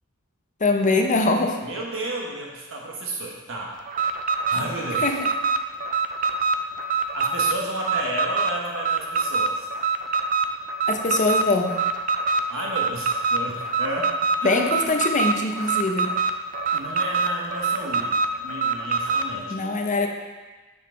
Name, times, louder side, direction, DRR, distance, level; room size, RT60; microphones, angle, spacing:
voice 1, 0.6-1.6 5.0-5.3 10.9-11.8 14.4-16.1 19.5-20.1, left 3 dB, 35° left, 3 dB, 0.6 m, -22 dB
voice 2, 1.6-3.7 4.5-5.1 7.1-9.7 12.5-14.9 16.7-19.5, right 1 dB, 65° right, -2 dB, 1.3 m, -32 dB
Alarm, 3.9-19.3, right 4 dB, 40° right, 0.4 m, -25 dB
6.7 x 5.4 x 3.8 m, 1.3 s
head